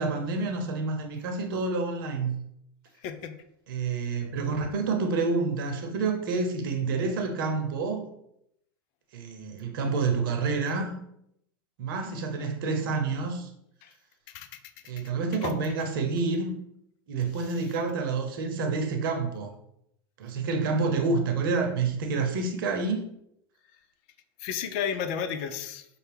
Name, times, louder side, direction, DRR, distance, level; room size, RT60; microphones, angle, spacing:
voice 1, 0.0-2.4 3.7-8.1 9.1-11.0 11.8-13.5 14.9-16.6 17.1-19.5 20.2-23.0, right 4 dB, 70° right, 4 dB, 0.8 m, -28 dB
voice 2, 3.0-3.4 13.8-13.9 14.3-14.6 15.4-15.5 24.4-25.9, left 8 dB, 55° left, 10 dB, 0.5 m, -32 dB
5.3 x 2.2 x 3.4 m, 0.76 s
hypercardioid pair, 100°, 12 cm